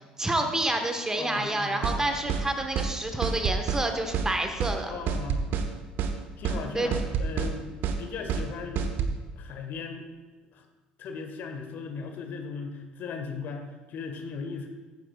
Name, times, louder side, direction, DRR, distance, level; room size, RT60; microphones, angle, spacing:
voice 1, 0.2-4.9 6.7-6.9, right 1 dB, 15° right, 5 dB, 1.3 m, -28 dB
voice 2, 1.1-2.0 4.9-5.6 6.4-9.0 9.4-10.0 10.5-10.6 11.0-14.7, left 5 dB, 50° left, 5 dB, 1.3 m, -37 dB
sound 1, 1.8-2.0 2.3-2.5 2.8-2.9 3.2-3.8 4.1-4.3 4.6-4.8 5.1-5.7 6.0-6.1 6.4-6.6 6.9-7.5 7.8-8.0 8.3-8.5 8.8-9.1, right 6 dB, 50° right, 0.9 m, -27 dB
14.5 x 9.4 x 2.4 m, 1.3 s
figure-of-eight pair, 60°, 4 cm